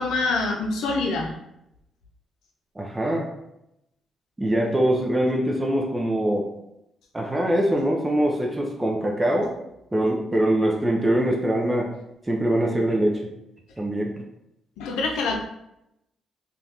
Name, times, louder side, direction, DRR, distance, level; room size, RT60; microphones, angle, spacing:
voice 1, 0.0-1.3 14.8-15.4, left 3 dB, 85° left, 1 dB, 0.5 m, -25 dB
voice 2, 2.8-3.3 4.4-6.5 7.1-9.5 9.9-11.9 12.3-13.2 13.8-14.1, right 1 dB, 15° right, 0 dB, 0.5 m, -23 dB
3.3 x 2.4 x 2.8 m, 0.84 s
cardioid pair, 90°, 0 cm